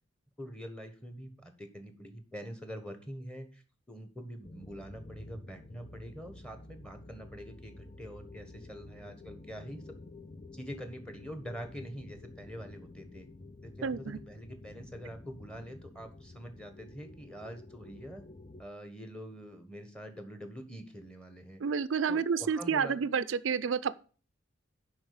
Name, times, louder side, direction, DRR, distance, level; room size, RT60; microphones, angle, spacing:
voice 1, 0.4-3.6 3.9-10.0 10.5-13.2 13.6-18.2 18.6-21.6 22.1-23.0, equal, 5° left, 1.3 m, -45 dB
sound 1, 4.4-18.6, left 2 dB, 25° left, 0.5 m, -50 dB
voice 2, 13.8-14.2 21.6-24.0, right 6 dB, 80° right, 0.4 m, -30 dB
7.2 x 5.7 x 6.9 m
head